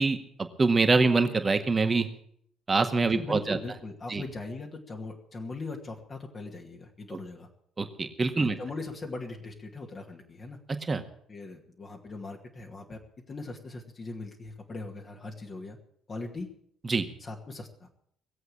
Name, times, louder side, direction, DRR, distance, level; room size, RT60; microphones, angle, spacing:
voice 1, 0.0-2.1 2.7-3.6 4.1-4.2 7.8-8.6 10.9-11.0 16.9-17.1, right 3 dB, 30° right, 7 dB, 1.9 m, -25 dB
voice 2, 3.1-7.5 8.4-10.6 11.3-13.0 13.3-15.8 16.1-16.5 17.2-17.9, left 3 dB, 35° left, 0 dB, 2.4 m, -40 dB
19.0 x 8.0 x 8.7 m, 0.66 s
hypercardioid pair, 50°, 0 cm